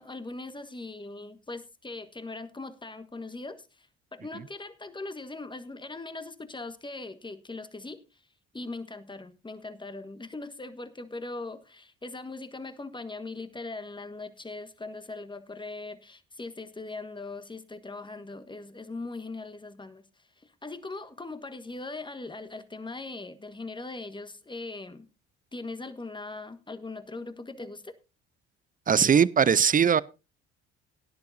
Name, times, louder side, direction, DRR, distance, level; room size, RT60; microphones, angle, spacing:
voice 1, 0.0-8.2 8.5-25.1 25.5-28.0, left 3 dB, 15° left, 1.4 m, -40 dB
voice 2, 28.9-30.0, right 7 dB, 25° right, 0.6 m, -20 dB
18.0 x 10.5 x 2.6 m
hypercardioid pair, 60°, 31 cm